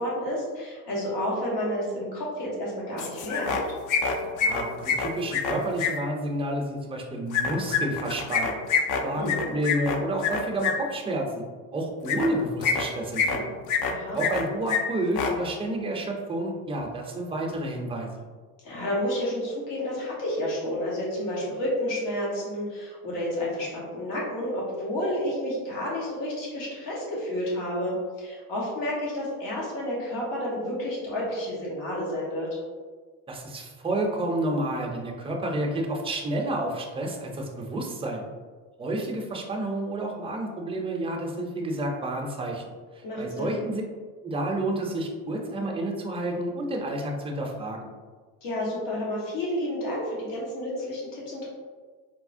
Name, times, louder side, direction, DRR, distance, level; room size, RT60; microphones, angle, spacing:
voice 1, 0.0-3.6 9.1-9.5 13.8-14.2 18.6-32.6 43.0-43.6 48.4-51.5, left 1 dB, 75° left, -5 dB, 1.3 m, -30 dB
sound 1, 3.0-3.6 3.9-5.9 7.3-10.7 12.0-12.3 12.6-13.4 13.7-14.4 14.7-14.8 15.1-15.3, left 6 dB, 50° left, 0.5 m, -26 dB
voice 2, 4.4-8.6 9.0-11.4 11.7-13.6 14.1-18.2 33.3-38.3 38.8-43.8 44.2-47.9, right 1 dB, 15° right, 0 dB, 0.5 m, -30 dB
4.2 x 2.1 x 2.5 m, 1.5 s
supercardioid pair, 95°, 41 cm